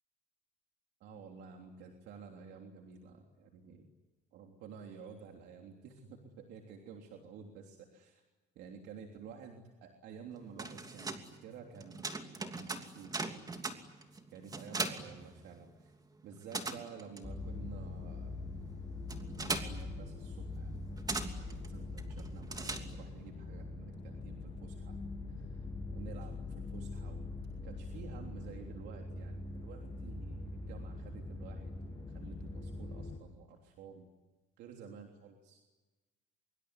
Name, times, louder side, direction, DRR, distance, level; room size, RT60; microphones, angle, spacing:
voice 1, 1.0-3.9 4.3-8.2 8.5-13.5 14.3-15.9 16.2-18.3 19.4-20.7 21.3-25.0 25.3-27.2 27.6-34.1 34.6-35.6, right 6 dB, 80° right, 2 dB, 3.4 m, -51 dB
sound 1, 10.3-15.9 16.2-23.3, right 3 dB, 20° right, 2.9 m, -41 dB
sound 2, 17.2-33.2, left 2 dB, 20° left, 8.0 m, -43 dB
25.0 x 24.0 x 9.8 m, 1.2 s
cardioid pair, 110°, 17 cm